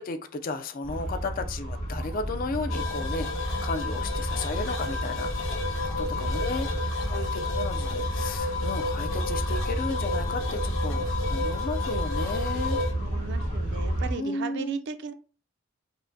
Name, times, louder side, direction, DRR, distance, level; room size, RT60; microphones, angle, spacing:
voice 1, 0.0-6.7 7.0-12.8 14.1-14.8, left 3 dB, 40° left, 8 dB, 0.4 m, -34 dB
sound 1, 0.8-14.1, right 1 dB, 80° left, 1.4 m, -31 dB
sound 2, 2.7-12.9, left 4 dB, 65° left, 0.7 m, -33 dB
voice 2, 6.1-6.8 13.0-15.1, right 5 dB, 55° right, 10 dB, 0.4 m, -37 dB
5.4 x 2.1 x 2.6 m, 0.37 s
head